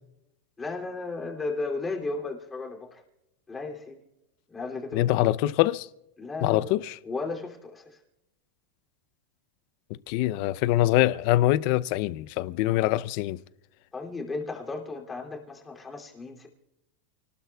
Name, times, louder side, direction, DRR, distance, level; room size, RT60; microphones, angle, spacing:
voice 1, 0.6-3.0 3.5-4.0 4.5-5.3 6.2-6.7 7.0-8.0 13.9-16.5, left 3 dB, 15° left, 2.8 m, -35 dB
voice 2, 4.9-5.9 6.4-7.0 10.1-13.4, left 15 dB, 50° left, 0.5 m, -24 dB
29.5 x 19.0 x 2.3 m
supercardioid pair, 145°, 0 cm